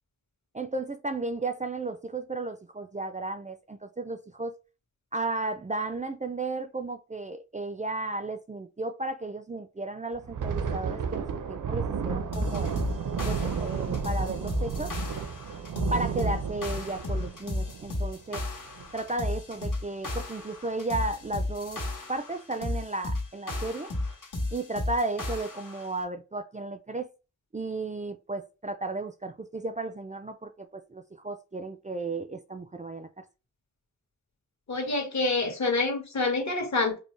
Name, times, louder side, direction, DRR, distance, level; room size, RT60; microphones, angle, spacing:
voice 1, 0.5-4.5 5.1-12.7 13.2-14.9 15.9-18.4 18.9-21.8 22.1-23.9 24.5-27.1 27.5-33.2, right 2 dB, 25° right, 0.4 m, -34 dB
Thunder, 10.1-19.2 19.6-19.8 20.2-20.4 21.0-21.5, right 6 dB, 75° right, 0.6 m, -33 dB
sound 1, 12.3-25.9, left 2 dB, 85° left, 1.7 m, -34 dB
voice 2, 34.7-37.0, left 3 dB, 60° left, 1.6 m, -27 dB
5.2 x 2.1 x 3.2 m
wide cardioid pair, 90°, 32 cm